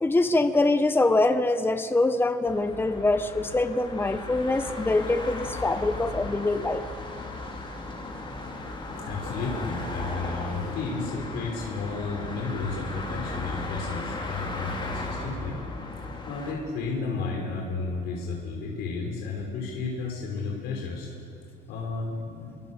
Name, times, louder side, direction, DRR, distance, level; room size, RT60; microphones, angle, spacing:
voice 1, 0.0-6.8, left 2 dB, 15° left, 9 dB, 1.2 m, -24 dB
sound 1, 2.4-16.5, left 2 dB, 30° left, 5.4 m, -36 dB
voice 2, 9.1-15.5 16.2-21.1 21.7-22.6, left 4 dB, 85° left, 0 dB, 5.3 m, -32 dB
28.5 x 24.5 x 7.4 m, 2.5 s
cardioid pair, 110°, 17 cm